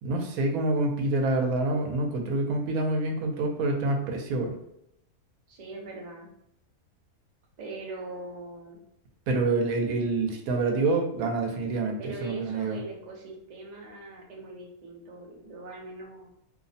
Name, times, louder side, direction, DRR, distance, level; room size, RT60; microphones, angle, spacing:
voice 1, 0.0-4.5 9.3-12.8, right 2 dB, 80° right, 2 dB, 1.0 m, -27 dB
voice 2, 5.5-6.3 7.6-8.8 12.0-16.3, right 2 dB, 55° right, -1 dB, 0.5 m, -41 dB
2.6 x 2.0 x 2.6 m, 0.77 s
omnidirectional pair, 1.5 m